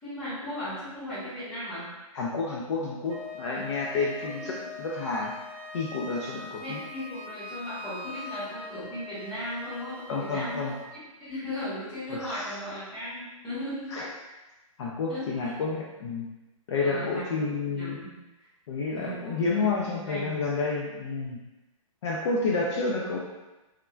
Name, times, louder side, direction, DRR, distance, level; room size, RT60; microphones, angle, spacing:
voice 1, 0.0-1.9 4.2-4.6 6.6-14.0 15.1-15.3 16.8-18.2 18.9-20.3 22.4-22.8, equal, 5° left, -15 dB, 1.3 m, -37 dB
voice 2, 2.1-5.4 5.7-6.8 10.1-10.7 12.1-12.5 13.9-14.1 14.8-16.3 16.7-18.0 18.7-21.4 22.0-23.2, left 4 dB, 55° left, -3 dB, 0.4 m, -30 dB
Wind instrument woodwind instrument, 3.1-10.9, left 2 dB, 80° right, 0.6 m, -42 dB
3.5 x 2.1 x 2.2 m, 1.1 s
hypercardioid pair, 155°, 18 cm